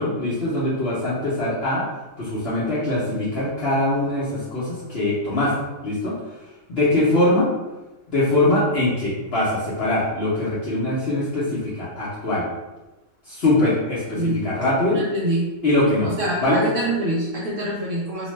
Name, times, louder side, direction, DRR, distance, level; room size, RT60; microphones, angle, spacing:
voice 1, 0.0-1.8 2.2-5.5 5.8-6.1 6.7-7.5 8.1-12.4 13.3-15.0 15.6-16.1 16.4-16.6, left 1 dB, 55° left, -9 dB, 0.7 m, -22 dB
voice 2, 14.2-14.6 14.9-15.5 16.0-18.3, right 1 dB, 70° right, -5 dB, 0.7 m, -25 dB
2.8 x 2.1 x 3.1 m, 1.1 s
omnidirectional pair, 1.7 m